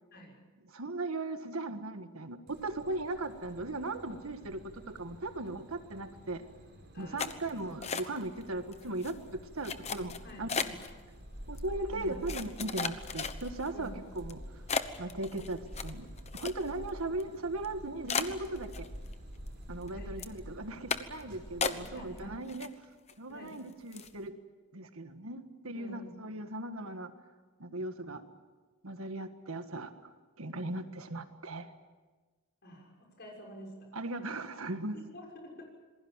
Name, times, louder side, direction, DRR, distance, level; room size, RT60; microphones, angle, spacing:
voice 1, 0.7-6.4 7.0-10.6 11.5-14.6 15.0-16.1 16.3-18.9 19.7-22.7 23.2-24.4 24.7-27.1 27.6-28.2 28.8-30.1 30.4-31.7 33.9-35.0, right 2 dB, 70° right, 8 dB, 1.7 m, -38 dB
sound 1, 2.5-22.2, equal, 50° right, 5.4 m, -48 dB
voice 2, 6.9-7.5 10.2-10.8 11.9-12.1 13.7-14.0 19.8-20.2 20.5-20.6 21.6-22.4 23.3-23.6 25.7-26.1 32.6-33.9 34.9-35.7, equal, 45° left, 0 dB, 6.3 m, -49 dB
sound 2, 7.2-8.4 8.7-9.1 9.6-10.9 11.6-11.7 12.3-13.7 14.2-14.3 14.7-16.9 17.2-17.3 17.6-17.7 18.1-19.1 19.5-19.9 20.2-20.4 20.9-21.2 21.6-22.2 22.5-23.1 23.5-23.6 23.9-24.2, left 5 dB, 30° left, 1.0 m, -35 dB
27.0 x 21.0 x 7.4 m, 1.3 s
head